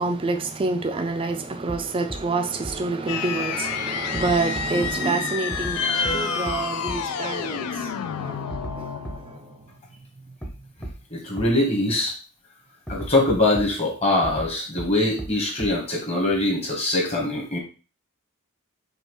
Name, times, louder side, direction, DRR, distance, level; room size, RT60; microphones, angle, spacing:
voice 1, 0.0-9.7, right 3 dB, 25° right, 0.3 m, -28 dB
sound 1, 1.7-1.8 2.1-2.2 2.6-2.7 4.1-4.9 5.5-5.7 6.0-6.1 6.5-6.6 6.9-7.0 8.5-8.7 9.0-9.1 10.4-10.5 10.8-10.9 11.4-11.5 12.9-13.6 14.2-14.5 14.8-14.9 15.2-15.3 15.6-15.7, right 1 dB, 5° left, 0.7 m, -33 dB
sound 2, 3.1-9.6, left 8 dB, 90° left, 0.3 m, -30 dB
sound 3, 5.8-7.6, left 3 dB, 60° left, 1.9 m, -29 dB
voice 2, 11.1-12.1 12.9-17.6, left 2 dB, 25° left, 1.2 m, -23 dB
5.2 x 2.3 x 3.0 m
head